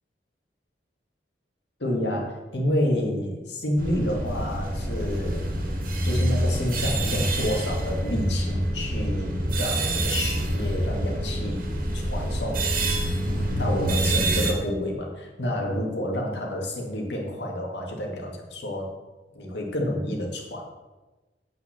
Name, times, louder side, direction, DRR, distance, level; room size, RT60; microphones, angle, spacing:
voice 1, 1.8-5.5 6.0-11.7 11.9-12.9 13.6-18.9 19.4-20.7, left 1 dB, 75° left, 1 dB, 2.2 m, -29 dB
sound 1, 3.8-14.5, right 1 dB, 55° right, 2.0 m, -26 dB
8.4 x 6.0 x 7.3 m, 1.2 s
head